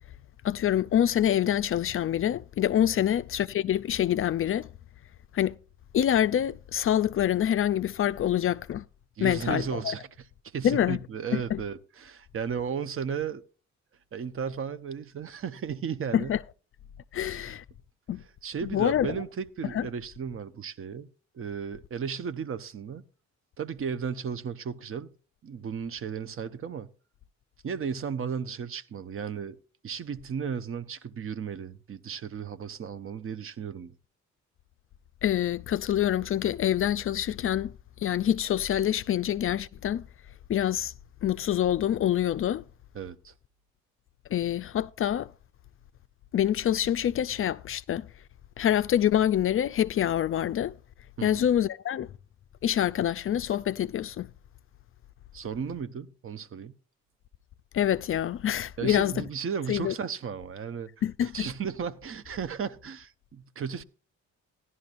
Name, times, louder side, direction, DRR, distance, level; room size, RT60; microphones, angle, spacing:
voice 1, 0.4-4.7 5.3-5.6 5.9-8.8 9.2-9.9 10.6-11.0 11.3-11.6 16.1-16.4 17.1-17.6 18.1-18.2 18.6-19.1 19.7-19.9 35.2-37.7 38.0-40.0 40.5-40.9 41.2-42.6 44.3-45.3 46.3-48.1 48.6-50.7 51.2-52.1 52.6-54.3 57.7-59.2 59.7-59.9 61.0-61.5, left 10 dB, 45° left, 0.4 m, -26 dB
voice 2, 9.2-10.1 10.4-13.4 14.1-16.3 17.2-17.5 18.4-21.1 21.3-23.0 23.6-25.1 25.4-26.9 27.6-29.6 29.8-33.9 42.9-43.3 51.2-51.4 55.3-56.7 58.8-60.9 61.2-63.8, right 7 dB, 45° right, 0.8 m, -35 dB
14.5 x 11.0 x 2.5 m
cardioid pair, 90°, 30 cm